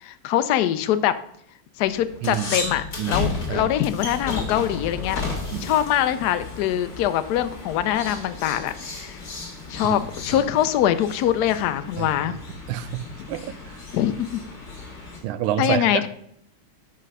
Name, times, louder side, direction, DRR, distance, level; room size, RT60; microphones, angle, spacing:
voice 1, 0.0-1.1 1.8-5.2 5.6-9.2 9.7-12.3 13.9-14.4 15.6-16.1, left 11 dB, 75° left, 11 dB, 0.9 m, -23 dB
sound 1, 1.8-15.2, left 3 dB, 50° left, 2.4 m, -34 dB
voice 2, 3.0-3.7 5.5-5.7 9.8-10.0 12.0-12.3 12.7-13.0 13.3-13.4 13.7-13.8 15.2-16.1, right 11 dB, 80° right, 12 dB, 1.4 m, -28 dB
6.3 x 5.3 x 5.4 m, 0.69 s
omnidirectional pair, 2.3 m